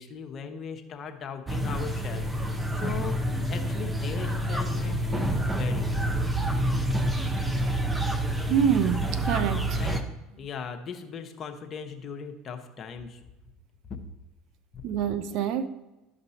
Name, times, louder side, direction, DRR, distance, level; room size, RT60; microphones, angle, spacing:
voice 1, 0.0-3.2 3.5-5.9 9.8-10.0 10.4-13.2, left 6 dB, 40° left, 1.0 m, -38 dB
sound 1, 1.5-10.0, right 1 dB, 10° right, 0.9 m, -28 dB
voice 2, 8.5-9.8 14.8-15.7, right 8 dB, 60° right, 0.5 m, -26 dB
12.0 x 5.2 x 2.8 m
hypercardioid pair, 85°, 0 cm